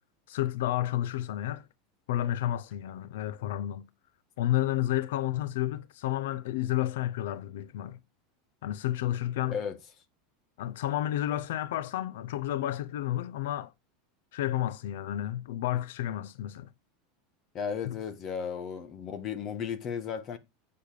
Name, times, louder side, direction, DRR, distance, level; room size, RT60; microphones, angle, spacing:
voice 1, 0.3-1.6 2.1-3.9 4.4-8.0 8.6-9.6 10.6-13.7 14.3-16.7 17.9-18.0, left 13 dB, 75° left, 0.7 m, -31 dB
voice 2, 9.5-9.8 17.5-20.4, left 7 dB, 30° left, 1.6 m, -35 dB
8.4 x 6.6 x 5.1 m
supercardioid pair, 170°, 0 cm